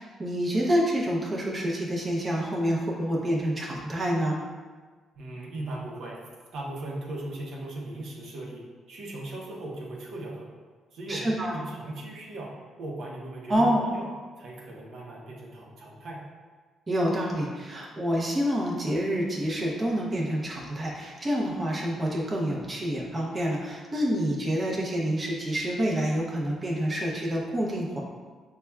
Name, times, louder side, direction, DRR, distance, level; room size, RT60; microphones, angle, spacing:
voice 1, 0.0-4.3 11.1-11.6 13.5-13.8 16.9-28.0, equal, 25° right, -4 dB, 0.7 m, -27 dB
voice 2, 5.1-10.5 10.9-12.5 12.8-14.1 14.4-16.2, right 2 dB, 75° right, -4 dB, 0.8 m, -38 dB
5.6 x 2.3 x 2.2 m, 1.4 s
cardioid pair, 90°, 0 cm